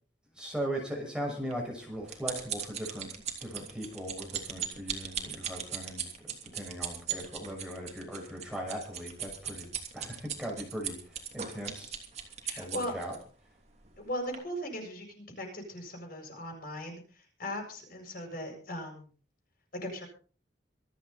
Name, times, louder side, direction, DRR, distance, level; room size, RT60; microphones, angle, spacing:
voice 1, 0.3-3.1 3.4-6.3 6.5-11.9 12.6-13.1, equal, 5° right, -1 dB, 6.0 m, -39 dB
sound 1, 1.5-13.2 13.8-14.0 14.3-14.4, right 8 dB, 40° right, 3.1 m, -38 dB
voice 2, 12.4-12.9 14.0-19.1 19.8-20.1, equal, 55° left, 2 dB, 7.6 m, -38 dB
26.0 x 9.3 x 4.2 m, 0.40 s
head